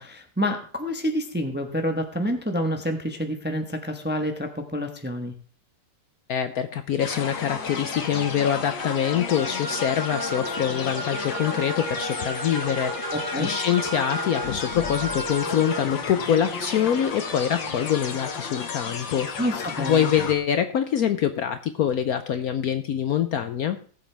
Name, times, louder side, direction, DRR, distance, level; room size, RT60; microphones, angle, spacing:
voice 1, 0.0-5.3 13.1-13.5 19.4-20.1, equal, 10° right, 5 dB, 0.7 m, -28 dB
voice 2, 6.3-19.3 19.8-23.8, left 9 dB, 65° left, 9 dB, 1.0 m, -25 dB
sound 1, 7.0-20.3, left 5 dB, 90° left, 2.1 m, -33 dB
sound 2, 9.4-15.8, right 3 dB, 50° right, 1.2 m, -34 dB
18.5 x 7.6 x 3.4 m, 0.41 s
omnidirectional pair, 2.0 m